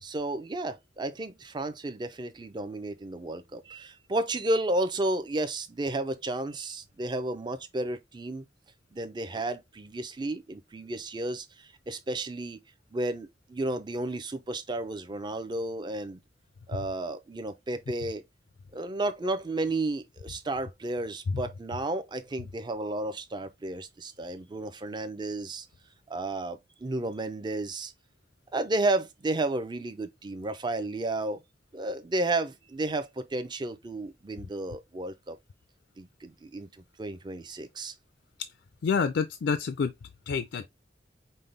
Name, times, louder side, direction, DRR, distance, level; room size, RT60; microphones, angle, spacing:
voice 1, 0.0-8.4 8.9-12.6 12.9-16.2 16.7-18.2 18.7-25.7 26.1-27.9 28.5-31.4 31.7-35.4 36.0-36.7 37.0-37.9, right 2 dB, 25° right, 0.5 m, -32 dB
voice 2, 38.8-39.9 40.3-40.7, left 5 dB, 75° left, 0.4 m, -27 dB
5.4 x 2.1 x 3.2 m
head